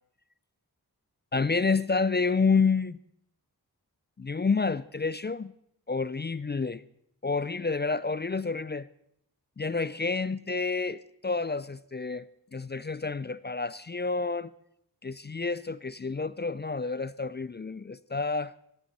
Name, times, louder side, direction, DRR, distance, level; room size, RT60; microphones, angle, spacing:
voice 1, 1.3-3.0 4.2-5.5 5.9-6.8 7.2-8.9 9.6-12.3 12.5-14.5 15.0-18.5, left 4 dB, 30° left, 0.4 m, -29 dB
16.0 x 11.0 x 4.1 m
wide cardioid pair, 40°, 39 cm